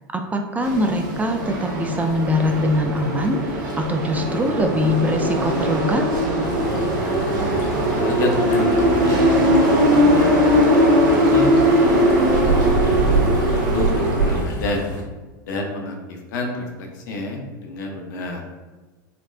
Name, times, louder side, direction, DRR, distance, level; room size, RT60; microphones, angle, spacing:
voice 1, 0.1-6.1, left 1 dB, 15° right, 4 dB, 0.3 m, -22 dB
sound 1, 0.6-14.4, equal, 70° right, 0.8 m, -19 dB
sound 2, 6.4-15.0, left 2 dB, 35° left, 0.9 m, -34 dB
voice 2, 7.0-7.4 7.9-10.5 11.2-12.7 13.2-14.8 15.4-18.4, left 2 dB, 70° left, 2 dB, 0.8 m, -29 dB
4.1 x 2.1 x 2.5 m, 1.3 s
hypercardioid pair, 100°, 11 cm